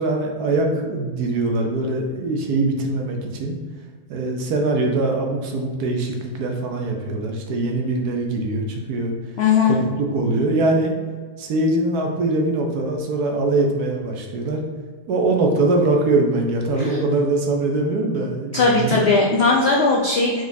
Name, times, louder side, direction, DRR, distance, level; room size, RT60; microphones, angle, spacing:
voice 1, 0.0-3.5 4.1-9.1 9.6-10.9 11.4-14.6 15.1-19.0, right 2 dB, 70° right, 2 dB, 1.2 m, -22 dB
voice 2, 9.4-9.8 16.8-17.0 18.5-20.4, left 4 dB, 75° left, -2 dB, 0.6 m, -18 dB
4.6 x 4.1 x 2.7 m, 1.5 s
omnidirectional pair, 1.7 m